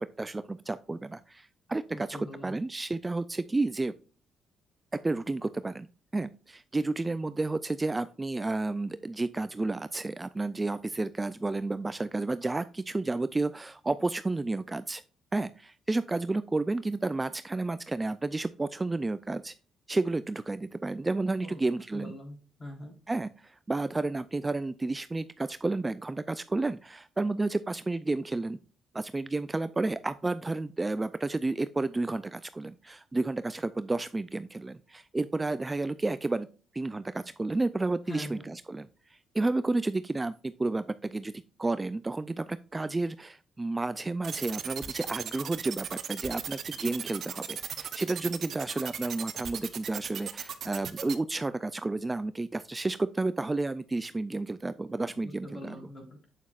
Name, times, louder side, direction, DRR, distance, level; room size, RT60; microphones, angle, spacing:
voice 1, 0.0-2.2 2.4-3.9 4.9-5.9 6.1-15.0 15.3-19.5 19.9-22.1 23.1-28.6 28.9-36.5 36.7-55.9, right 2 dB, 20° right, 13 dB, 0.3 m, -31 dB
voice 2, 1.9-2.5 21.4-21.6 21.9-22.9 38.1-38.5 55.2-56.3, left 1 dB, 30° left, 1 dB, 3.7 m, -43 dB
sound 1, 44.2-51.2, right 8 dB, 60° right, 0.8 m, -37 dB
8.3 x 7.1 x 2.4 m, 0.37 s
cardioid pair, 90°, 0 cm